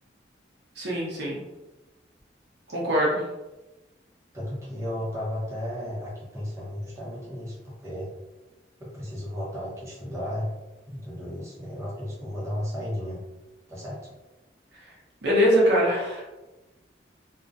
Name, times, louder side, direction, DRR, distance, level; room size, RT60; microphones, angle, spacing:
voice 1, 0.8-1.4 2.7-3.2 14.7-14.8 15.2-16.2, equal, 70° right, -4 dB, 0.7 m, -23 dB
voice 2, 4.3-8.1 8.8-10.5 10.9-13.2 13.7-14.1, left 1 dB, 15° right, -7 dB, 0.7 m, -34 dB
2.4 x 2.1 x 2.5 m, 1.1 s
head